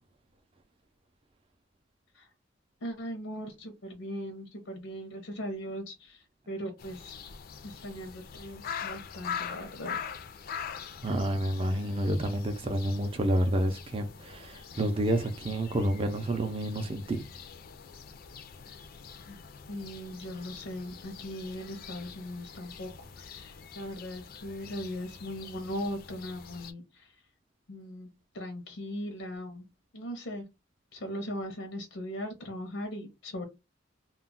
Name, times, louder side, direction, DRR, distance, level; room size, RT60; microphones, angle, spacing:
voice 1, 2.8-7.2 7.6-10.0 19.2-19.4 19.7-27.2 27.7-28.1 28.3-29.7 29.9-30.5 30.9-33.5, equal, 85° left, 0.6 m, -39 dB
sound 1, 6.8-26.7, left 7 dB, 50° left, 0.4 m, -44 dB
voice 2, 11.0-17.2, right 1 dB, 30° right, 0.4 m, -29 dB
2.2 x 2.0 x 3.7 m
head